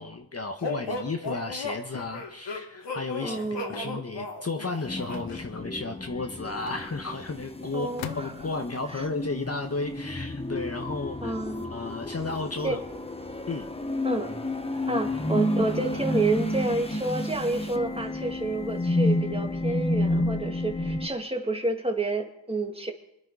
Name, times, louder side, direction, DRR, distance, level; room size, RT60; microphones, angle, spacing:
voice 1, 0.0-11.3 11.7-12.8 13.5-13.7 14.9-15.0, left 3 dB, 35° left, 4 dB, 1.4 m, -33 dB
sound 1, 0.6-5.4, left 2 dB, 75° left, 2.6 m, -35 dB
sound 2, 1.9-2.4 3.7-4.1 5.1-5.8 6.7-7.4 8.0-8.7, left 11 dB, 90° left, 0.8 m, -42 dB
voice 2, 3.2-4.0 7.7-8.5 8.9-9.1 11.2-11.7 12.6-12.8 14.0-14.4 14.9-22.9, right 2 dB, 15° right, 3 dB, 2.4 m, -30 dB
sound 3, 4.8-21.1, left 1 dB, 15° left, 1.3 m, -31 dB
25.0 x 9.9 x 5.0 m, 0.80 s
cardioid pair, 65°, 44 cm